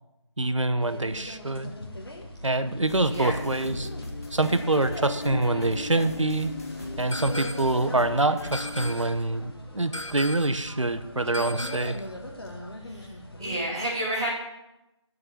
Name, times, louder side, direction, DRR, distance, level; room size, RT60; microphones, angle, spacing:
voice 1, 0.4-1.7 2.4-3.9 4.3-6.5 7.0-12.0, right 2 dB, 85° right, 10 dB, 0.8 m, -25 dB
sound 1, 0.8-13.6, left 1 dB, 50° left, 1.5 m, -41 dB
sound 2, 2.9-8.9, left 3 dB, 30° left, 1.0 m, -37 dB
sound 3, 7.1-7.8 8.5-9.3 9.9-10.7 11.3-12.1, left 1 dB, 80° left, 1.0 m, -37 dB
voice 2, 13.4-14.3, right 1 dB, 10° right, -7 dB, 1.0 m, -30 dB
6.8 x 6.8 x 7.9 m, 0.95 s
figure-of-eight pair, 165°, 16 cm